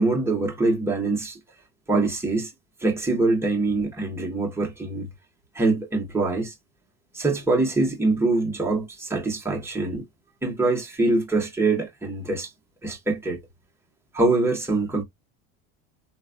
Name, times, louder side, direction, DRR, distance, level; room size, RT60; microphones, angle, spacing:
voice 1, 0.0-1.4 1.9-2.5 2.8-5.1 5.5-6.5 7.1-10.0 10.4-12.5 12.8-13.4 14.1-15.0, right 3 dB, 5° right, 1.5 m, -24 dB
3.1 x 2.5 x 2.5 m
supercardioid pair, 105°, 34 cm